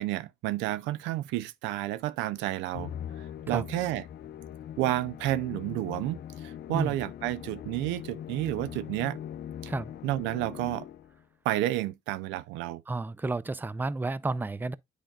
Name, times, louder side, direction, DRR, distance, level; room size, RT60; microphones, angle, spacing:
voice 1, 0.0-2.9 3.5-4.0 4.8-9.2 9.6-9.7 10.0-10.8 11.4-12.8, right 15 dB, 80° right, 0.5 m, -30 dB
Musical instrument, 2.7-11.2, left 10 dB, 60° left, 0.6 m, -41 dB
voice 2, 12.9-14.7, right 2 dB, 10° right, 0.4 m, -31 dB
9.0 x 5.0 x 2.3 m
supercardioid pair, 60°, 19 cm